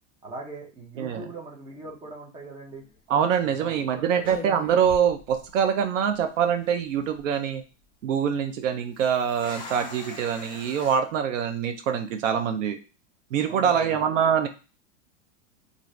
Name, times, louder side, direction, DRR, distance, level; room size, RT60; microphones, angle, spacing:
voice 1, 0.2-2.8 3.4-4.3 13.5-14.0, right 2 dB, 15° right, 0 dB, 0.7 m, -41 dB
sound 1, 2.7-3.0 3.7-3.9 4.2-5.8 6.1-6.2 6.8-7.2 8.9-11.0, left 3 dB, 15° left, 0.9 m, -42 dB
voice 2, 3.1-7.6 8.0-12.8 13.3-14.5, right 8 dB, 80° right, 7 dB, 0.6 m, -24 dB
2.6 x 2.5 x 3.1 m, 0.32 s
supercardioid pair, 135°, 37 cm